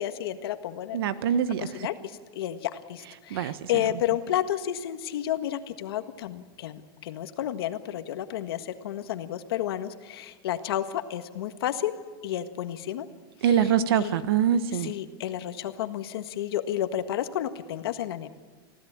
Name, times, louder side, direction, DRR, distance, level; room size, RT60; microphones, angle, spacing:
voice 1, 0.0-1.0 1.6-11.9 12.2-13.1 13.4-14.2 14.7-18.3, left 11 dB, 80° left, 1.6 m, -31 dB
voice 2, 0.9-1.7 3.3-3.5 13.4-14.9, right 9 dB, 75° right, 1.4 m, -24 dB
25.5 x 16.0 x 8.8 m
supercardioid pair, 175°, 13 cm